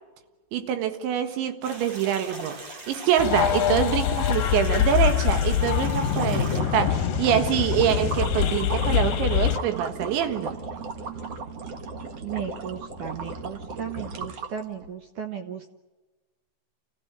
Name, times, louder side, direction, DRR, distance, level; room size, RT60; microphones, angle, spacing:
voice 1, 0.5-2.6 2.9-10.6, right 9 dB, 85° right, 8 dB, 3.9 m, -25 dB
sound 1, 1.6-6.6, right 1 dB, 35° right, 3.0 m, -41 dB
sound 2, 3.2-9.6, left 10 dB, 70° left, 2.2 m, -24 dB
sound 3, 6.0-14.9, right 3 dB, 50° right, 2.0 m, -36 dB
voice 2, 12.2-15.7, right 8 dB, 70° right, 6 dB, 2.0 m, -35 dB
29.0 x 16.0 x 9.1 m, 1.2 s
omnidirectional pair, 5.1 m